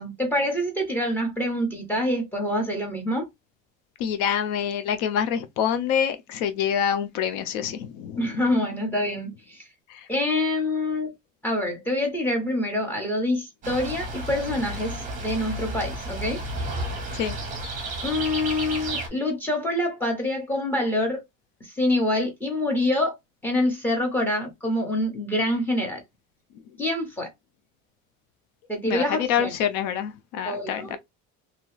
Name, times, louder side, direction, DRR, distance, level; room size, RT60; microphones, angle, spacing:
voice 1, 0.0-3.3 8.2-9.6 10.1-11.1 11.4-16.4 18.0-21.2 21.6-23.1 23.4-26.0 26.8-27.3 28.7-29.5 30.4-31.0, left 1 dB, 5° left, 1.0 m, -26 dB
voice 2, 4.0-8.4 9.9-10.1 17.1-17.4 28.9-31.0, left 8 dB, 80° left, 0.6 m, -26 dB
sound 1, 13.6-19.1, right 1 dB, 25° right, 0.9 m, -32 dB
2.9 x 2.2 x 3.1 m
cardioid pair, 170°, 29 cm